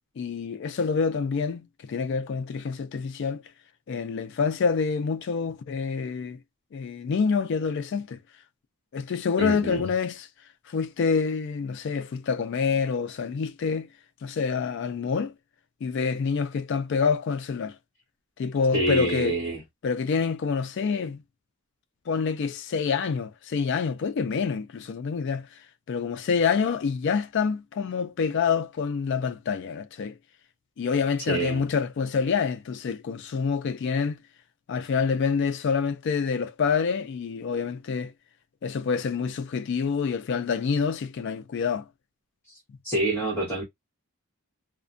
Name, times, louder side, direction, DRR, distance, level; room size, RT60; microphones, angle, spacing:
voice 1, 0.2-3.4 3.9-6.4 6.7-8.2 8.9-10.3 10.7-13.9 14.2-15.3 15.8-17.8 18.4-19.4 19.8-21.2 22.1-25.5 25.9-30.2 30.8-34.2 34.7-38.1 38.6-41.9, left 5 dB, 55° left, 0.3 m, -27 dB
voice 2, 9.4-9.9 18.7-19.6 31.2-31.7 42.5-42.6 42.8-43.6, right 2 dB, 10° left, 0.9 m, -27 dB
2.3 x 2.1 x 2.5 m
head